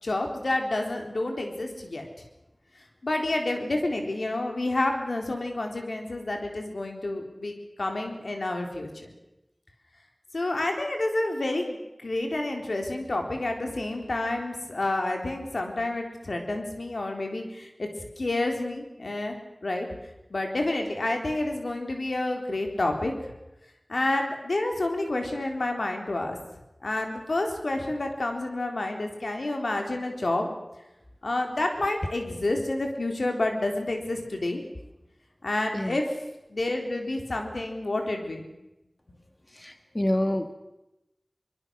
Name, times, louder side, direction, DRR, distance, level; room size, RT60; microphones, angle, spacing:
voice 1, 0.0-2.1 3.0-9.1 10.3-17.9 18.2-19.4 19.6-19.9 20.3-23.3 23.9-26.4 26.8-30.5 31.2-34.6 35.4-36.0 36.5-38.4, left 2 dB, 85° left, 3 dB, 3.8 m, -29 dB
voice 2, 39.5-40.5, left 1 dB, 30° left, 8 dB, 1.7 m, -27 dB
24.0 x 21.5 x 6.5 m, 0.92 s
wide cardioid pair, 50°, 0 cm